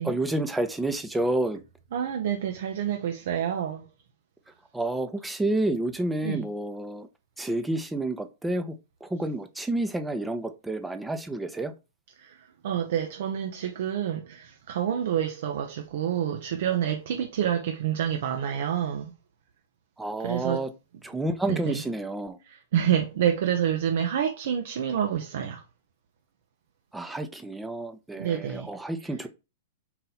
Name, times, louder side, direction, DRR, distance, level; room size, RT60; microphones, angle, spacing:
voice 1, 0.0-1.6 4.7-7.1 7.4-8.7 9.0-11.7 20.0-20.7 21.0-22.4 26.9-29.3, right 1 dB, 5° right, 0.5 m, -29 dB
voice 2, 1.9-3.9 6.2-6.5 12.2-19.1 20.2-20.6 21.5-21.8 22.4-25.6 28.2-28.7, right 9 dB, 65° right, 0.6 m, -28 dB
4.2 x 2.6 x 4.0 m
hypercardioid pair, 140°, 0 cm